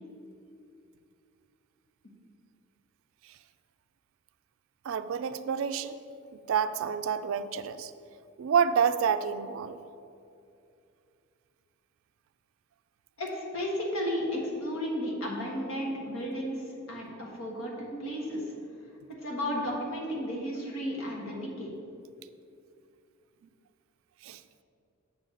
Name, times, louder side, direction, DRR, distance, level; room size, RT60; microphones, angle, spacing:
voice 1, 4.8-6.0 6.5-7.9 8.4-9.8 24.2-24.4, right 7 dB, 70° right, 11 dB, 0.3 m, -28 dB
voice 2, 13.2-18.5 19.1-21.7, equal, 70° left, -2 dB, 1.5 m, -33 dB
7.2 x 6.5 x 3.8 m, 2.5 s
head